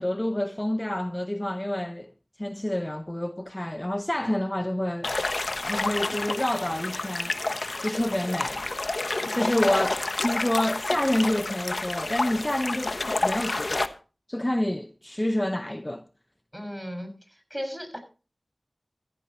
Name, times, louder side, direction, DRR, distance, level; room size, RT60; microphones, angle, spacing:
voice 1, 0.0-2.1 2.4-5.1 5.7-7.4 7.8-8.6 9.3-13.9 14.3-16.0, left 1 dB, 20° left, 0.7 m, -28 dB
sound 1, 5.0-13.9, left 2 dB, 65° left, 1.2 m, -29 dB
voice 2, 9.3-10.0 16.5-18.0, equal, 5° right, 6.3 m, -36 dB
15.0 x 14.5 x 3.0 m
wide cardioid pair, 45°, 0 cm